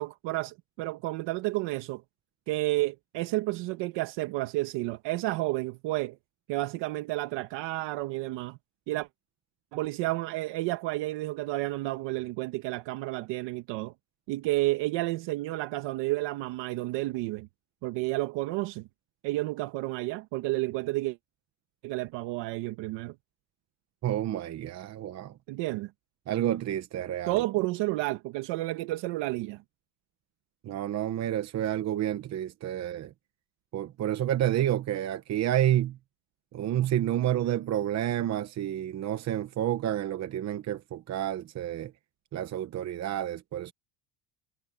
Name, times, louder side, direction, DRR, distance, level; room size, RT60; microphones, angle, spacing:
voice 1, 0.0-2.0 2.5-6.2 6.5-8.6 8.9-9.1 9.7-13.9 14.3-17.5 17.8-18.9 19.2-21.2 21.8-23.1 25.5-25.9 27.2-29.6, right 19 dB, 65° right, 1.4 m, -31 dB
voice 2, 24.0-25.3 26.3-27.3 30.6-33.1 33.7-36.0 36.5-41.9 42.3-43.7, right 12 dB, 35° right, 1.0 m, -29 dB
cardioid pair, 150°, 46 cm